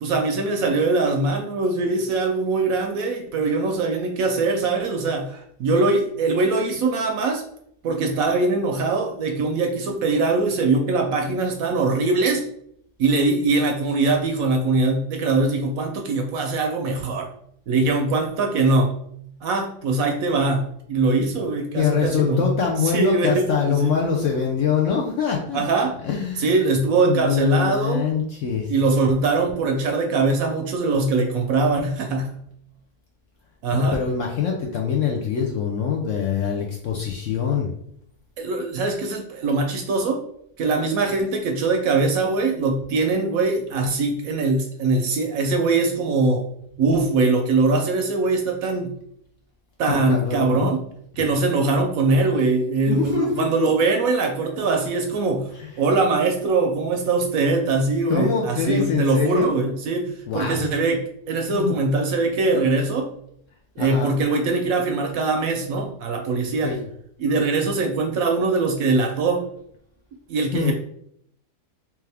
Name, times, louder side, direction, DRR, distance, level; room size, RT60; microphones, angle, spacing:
voice 1, 0.0-7.4 7.8-12.4 13.0-17.3 17.7-19.0 19.4-22.6 22.9-23.9 25.5-26.0 26.4-28.0 28.7-32.4 33.6-34.0 38.4-40.2 40.6-46.4 46.8-48.9 49.8-50.8 51.2-55.5 55.8-63.1 63.8-66.8 67.2-69.4 70.3-70.7, right 3 dB, 70° right, 3 dB, 0.9 m, -22 dB
voice 2, 21.7-25.6 26.0-26.7 27.1-28.7 33.7-37.7 49.9-50.7 52.9-53.7 55.6-55.7 57.5-57.7 58.1-59.6 60.3-60.6 61.5-61.8 63.8-64.1 66.6-66.9 70.5-70.7, left 6 dB, 70° left, -1 dB, 0.7 m, -24 dB
3.4 x 3.1 x 3.3 m, 0.71 s
omnidirectional pair, 1.8 m